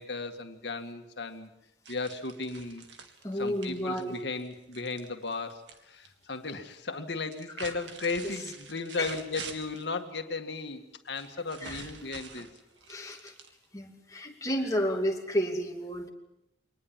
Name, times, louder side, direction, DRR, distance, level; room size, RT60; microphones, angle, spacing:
voice 1, 0.0-1.5 1.9-2.8 3.4-12.5, left 3 dB, 70° left, 6 dB, 1.9 m, -35 dB
sound 1, 1.8-5.8 6.0-6.7 7.2-9.9 11.1-13.8, right 5 dB, 80° right, 2.2 m, -46 dB
voice 2, 3.2-4.2 7.6-7.7 8.2-8.3 9.0-9.1 11.6-11.9 12.9-13.3 13.7-16.1, equal, 20° left, 1 dB, 2.5 m, -31 dB
23.5 x 19.5 x 7.4 m, 0.88 s
head